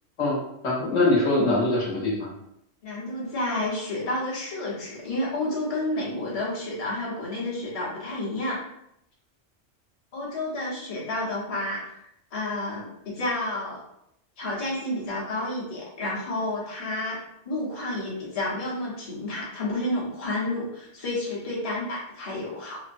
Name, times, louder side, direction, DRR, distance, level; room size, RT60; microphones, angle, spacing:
voice 1, 0.2-2.3, left 2 dB, 75° left, -4 dB, 1.1 m, -23 dB
voice 2, 2.8-8.6 10.1-12.0 12.3-13.8 14.4-17.2 17.5-22.8, left 1 dB, 35° left, -5 dB, 0.8 m, -30 dB
3.0 x 2.0 x 2.5 m, 0.79 s
omnidirectional pair, 1.2 m